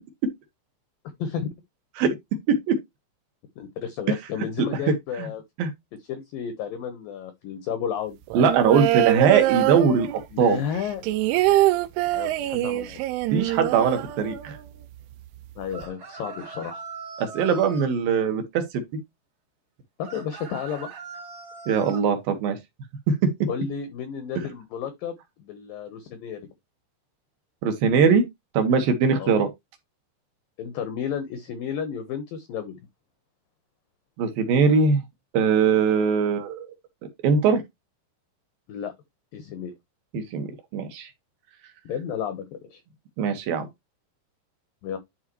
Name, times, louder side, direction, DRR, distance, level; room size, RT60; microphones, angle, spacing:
voice 1, 1.2-1.5 3.6-5.4 6.1-8.2 10.3-11.4 12.1-13.0 15.6-16.8 20.0-20.9 23.5-26.5 29.2-29.5 30.6-32.8 38.7-38.9 39.3-39.7 41.8-42.8 44.8-45.0, left 8 dB, 70° left, 2.2 m, -32 dB
voice 2, 8.3-10.6 13.3-14.6 17.2-18.8 21.7-22.6 23.1-23.2 27.6-28.2 28.5-29.5 34.2-35.1 35.3-36.7 37.2-37.6 40.1-41.1 43.2-43.7, right 6 dB, 60° right, 2.8 m, -21 dB
sound 1, 8.3-10.4 10.8-14.7 15.0-15.1 15.4-15.9, right 15 dB, 90° right, 3.2 m, -24 dB
sound 2, 15.7-17.9 20.0-22.1, right 4 dB, 45° right, 2.2 m, -40 dB
11.5 x 4.7 x 3.1 m
omnidirectional pair, 5.6 m